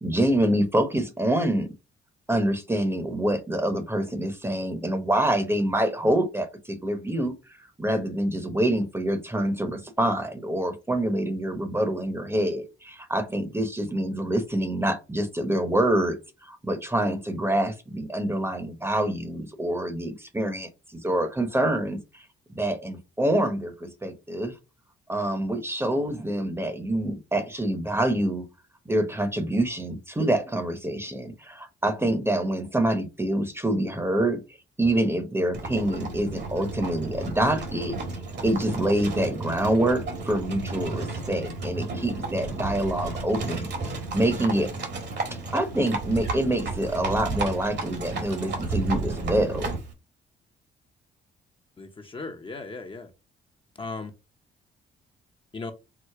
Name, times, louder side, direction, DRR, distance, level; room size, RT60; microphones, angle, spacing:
voice 1, 0.0-1.7 2.3-7.3 7.6-16.2 16.4-22.0 22.5-24.5 25.1-28.4 28.9-34.4 34.8-37.9 38.4-43.7 44.1-44.7 45.5-49.8, right 1 dB, 10° right, 8 dB, 0.9 m, -26 dB
Livestock farm animals working animals, 35.5-49.9, right 3 dB, 60° right, 1.5 m, -33 dB
voice 2, 51.8-53.1 53.7-54.1 55.5-55.7, left 3 dB, 25° left, 4 dB, 0.7 m, -37 dB
4.8 x 2.0 x 4.5 m, 0.28 s
cardioid pair, 90°, 20 cm